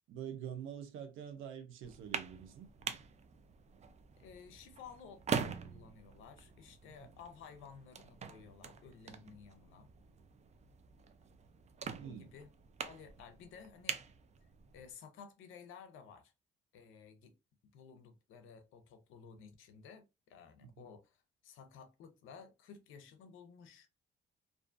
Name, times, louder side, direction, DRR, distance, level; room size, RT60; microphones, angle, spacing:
voice 1, 0.1-2.7 7.0-7.1 12.0-12.3 20.6-20.9, right 9 dB, 85° right, 0.6 m, -46 dB
sound 1, 1.8-14.9, right 6 dB, 35° right, 0.4 m, -44 dB
voice 2, 4.2-9.9 12.0-12.5 12.8-14.0 14.7-16.3 16.7-17.3 17.7-23.9, left 6 dB, 85° left, 0.6 m, -55 dB
2.5 x 2.3 x 2.4 m
cardioid pair, 90°, 20 cm